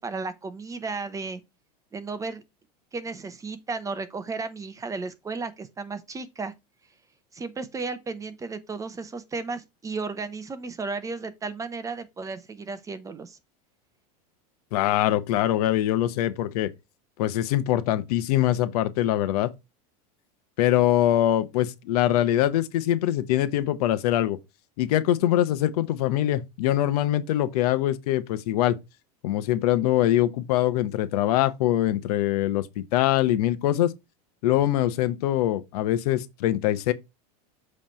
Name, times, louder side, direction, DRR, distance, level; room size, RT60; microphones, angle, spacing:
voice 1, 0.0-1.4 1.9-2.4 2.9-6.5 7.3-13.4, right 4 dB, 15° right, 0.7 m, -34 dB
voice 2, 14.7-16.7 17.2-19.5 20.6-24.4 24.8-28.8 29.2-33.9 34.4-36.9, left 13 dB, 75° left, 0.9 m, -23 dB
7.5 x 3.3 x 4.3 m
supercardioid pair, 130°, 20 cm